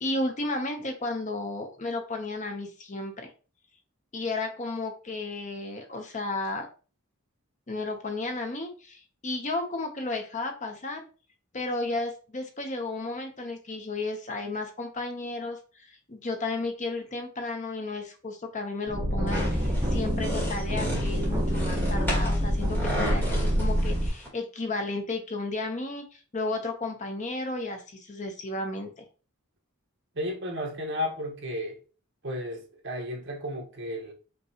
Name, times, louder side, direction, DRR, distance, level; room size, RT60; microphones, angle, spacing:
voice 1, 0.0-3.3 4.1-6.7 7.7-11.1 11.5-15.6 16.1-29.0, left 2 dB, 35° left, 0.8 m, -33 dB
sound 1, 18.9-24.1, equal, 15° right, 1.1 m, -27 dB
sound 2, 19.3-24.3, equal, 10° left, 1.9 m, -34 dB
voice 2, 30.1-31.8 32.2-34.1, left 1 dB, 60° right, 1.3 m, -33 dB
5.3 x 3.0 x 2.9 m
head